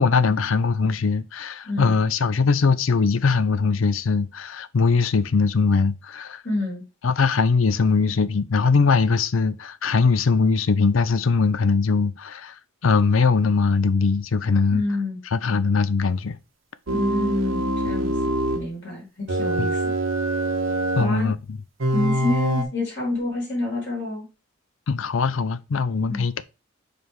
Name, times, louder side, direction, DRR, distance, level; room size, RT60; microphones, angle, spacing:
voice 1, 0.0-6.4 7.0-14.8 15.3-16.4 19.6-19.7 21.0-21.4 24.9-26.4, left 4 dB, 80° left, 0.5 m, -21 dB
voice 2, 1.6-2.0 6.4-6.8 14.7-15.2 16.9-19.9 21.0-21.3 21.9-24.3 26.1-26.2, left 1 dB, 60° left, 3.1 m, -28 dB
sound 1, 16.9-18.7 19.3-21.1 21.8-22.6, right 1 dB, 80° right, 1.1 m, -24 dB
5.3 x 4.7 x 4.4 m
head